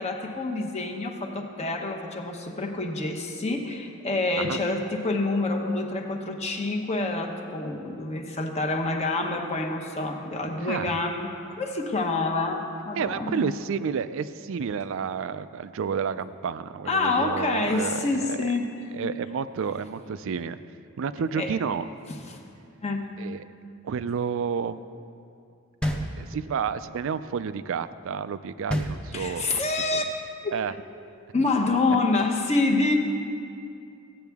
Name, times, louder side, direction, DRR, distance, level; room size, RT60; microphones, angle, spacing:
voice 1, 0.0-13.5 16.9-18.7 21.4-21.5 22.2-22.4 22.8-23.1 29.1-30.0 30.4-30.5 31.3-32.9, left 3 dB, 30° left, 2 dB, 0.9 m, -27 dB
voice 2, 10.6-11.0 13.0-18.5 18.9-20.6 21.0-21.8 23.2-23.4 23.8-24.8 26.2-29.6 29.9-30.0 30.5-30.7, right 6 dB, 65° right, 14 dB, 0.4 m, -30 dB
sound 1, 25.8-26.7 28.7-29.6, equal, 5° left, 0.7 m, -30 dB
15.5 x 9.2 x 3.5 m, 2.5 s
head